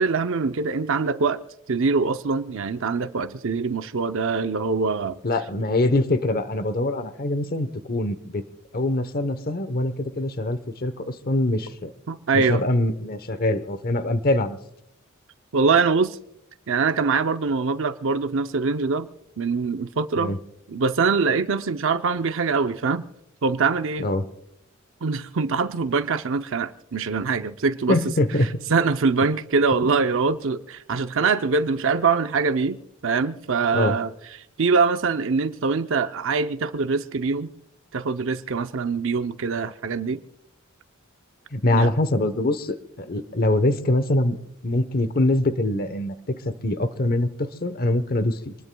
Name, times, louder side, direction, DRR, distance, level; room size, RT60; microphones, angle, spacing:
voice 1, 0.0-1.4 1.7-5.2 12.1-12.6 15.5-16.2 16.7-19.1 19.4-20.3 20.7-23.0 23.4-24.1 25.0-28.0 28.7-34.1 34.6-37.5 37.9-40.2 41.7-41.9, right 4 dB, 65° right, 0.6 m, -23 dB
voice 2, 5.2-8.4 8.7-11.9 12.3-14.6 20.2-20.4 24.0-24.3 27.9-28.6 29.8-30.0 33.7-34.0 41.5-44.4 44.6-48.6, left 1 dB, 45° left, 1.0 m, -24 dB
26.5 x 20.0 x 2.3 m
head